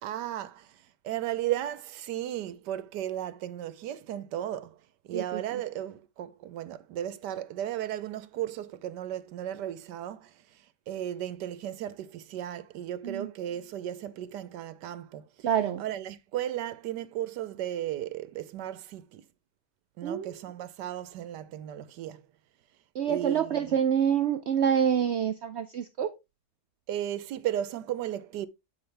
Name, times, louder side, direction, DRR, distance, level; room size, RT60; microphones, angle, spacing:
voice 1, 0.0-15.5 15.8-19.3 20.0-22.3 23.1-23.8 26.9-28.5, right 11 dB, 90° right, 1.3 m, -35 dB
voice 2, 15.4-15.8 20.0-20.3 23.0-26.1, right 8 dB, 70° right, 0.6 m, -27 dB
8.8 x 4.6 x 3.3 m
omnidirectional pair, 1.8 m